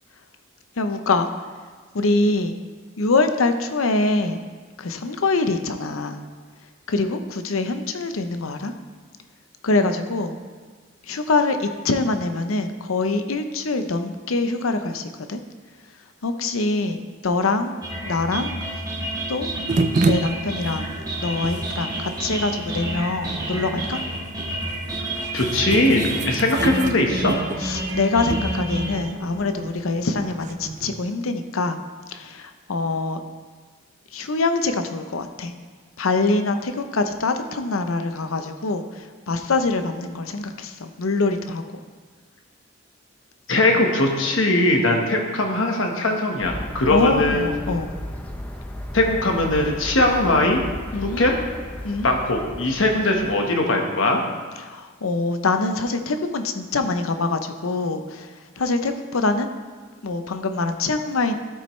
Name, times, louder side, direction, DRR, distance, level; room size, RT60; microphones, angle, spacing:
voice 1, 0.8-1.3 1.9-2.6 3.0-4.4 4.8-6.2 6.9-8.7 9.6-10.4 11.0-15.4 16.2-17.0 17.2-17.7 18.0-18.5 19.3-19.5 20.0-20.9 21.2-24.0 27.6-31.8 32.1-33.2 34.1-35.5 36.0-41.8 46.9-47.9 50.9-51.2 51.8-52.1 54.6-59.5 60.0-61.3, left 3 dB, 90° left, 8 dB, 0.7 m, -24 dB
sound 1, 17.8-28.9, right 1 dB, 20° right, 1.3 m, -29 dB
sound 2, 19.7-31.0, right 3 dB, 35° right, 0.4 m, -30 dB
voice 2, 25.3-27.4 43.5-47.5 48.9-50.6 51.0-51.3 52.0-54.2, left 2 dB, 70° left, 2 dB, 1.3 m, -20 dB
sound 3, 46.4-53.4, left 1 dB, 10° left, 0.6 m, -35 dB
12.5 x 8.7 x 3.2 m, 1.5 s
head